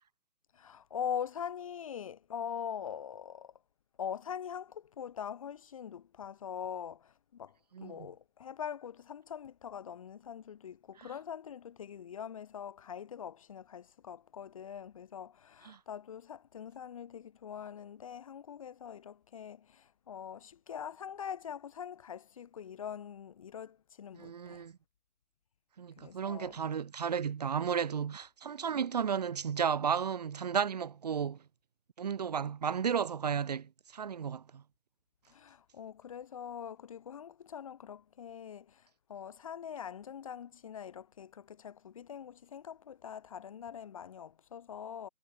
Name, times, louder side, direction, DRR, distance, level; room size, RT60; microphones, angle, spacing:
voice 1, 0.5-3.5 4.0-7.6 7.8-24.6 26.0-26.6 35.3-45.1, left 8 dB, 25° left, 2.8 m, -43 dB
voice 2, 24.1-24.7 25.8-31.4 32.0-34.6, right 7 dB, 25° right, 3.0 m, -33 dB
figure-of-eight pair, 155°, 44 cm